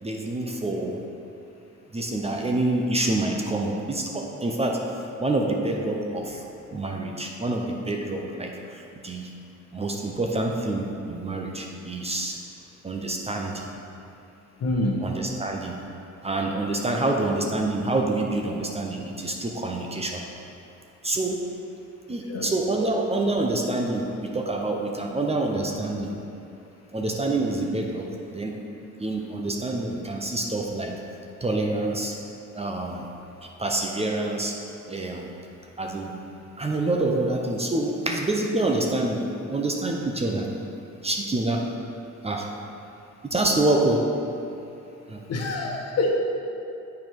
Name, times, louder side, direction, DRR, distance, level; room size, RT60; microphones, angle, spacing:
voice 1, 0.0-1.0 1.9-4.8 5.2-6.4 6.7-9.3 9.7-12.4 12.8-13.7 15.0-15.8 16.2-20.2 21.0-21.4 22.1-26.2 26.9-28.5 29.0-30.9 31.4-32.2 32.5-33.1 33.4-34.5 34.9-35.3 35.8-36.1 36.6-39.2 39.5-40.5 41.0-41.7 42.2-42.5 43.2-44.1 45.1-45.2, right 2 dB, 20° right, 1 dB, 0.7 m, -27 dB
voice 2, 14.6-15.0 22.3-22.5 45.3-46.2, left 2 dB, 55° left, 0 dB, 1.2 m, -25 dB
7.3 x 4.8 x 4.6 m, 2.7 s
cardioid pair, 90°, 30 cm